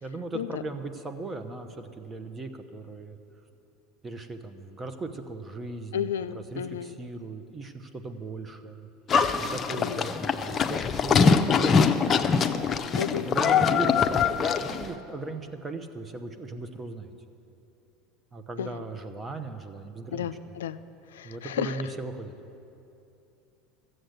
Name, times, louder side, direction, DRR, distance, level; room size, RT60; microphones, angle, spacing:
voice 1, 0.0-3.2 4.0-8.9 9.3-11.9 13.1-17.1 18.3-20.3 21.2-22.3, right 3 dB, 20° right, 8 dB, 1.0 m, -38 dB
voice 2, 5.9-6.9 9.8-10.0 13.0-13.7 18.6-18.8 20.1-20.8 21.1-21.8, left 9 dB, 90° left, 12 dB, 0.4 m, -33 dB
Livestock farm animals working animals, 9.1-14.9, left 5 dB, 30° left, 0.6 m, -23 dB
13.0 x 7.9 x 7.9 m, 2.8 s
hypercardioid pair, 100°, 0 cm